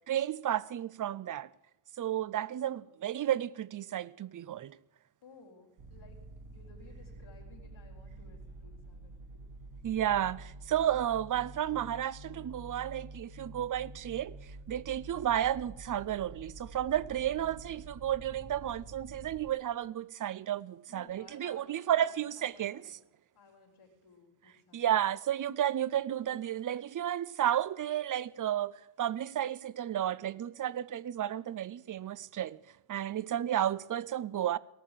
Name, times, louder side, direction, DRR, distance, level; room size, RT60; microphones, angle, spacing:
voice 1, 0.1-1.5 2.0-4.8 9.8-14.4 14.7-22.8 24.7-32.6 32.9-34.6, right 11 dB, 45° right, 0.5 m, -32 dB
voice 2, 5.2-6.2 6.5-9.4 17.3-17.8 20.9-23.0 23.3-24.9, left 4 dB, 90° left, 4.0 m, -58 dB
sound 1, 5.8-19.5, right 2 dB, 75° right, 1.3 m, -48 dB
18.5 x 6.7 x 8.9 m
wide cardioid pair, 110°, 47 cm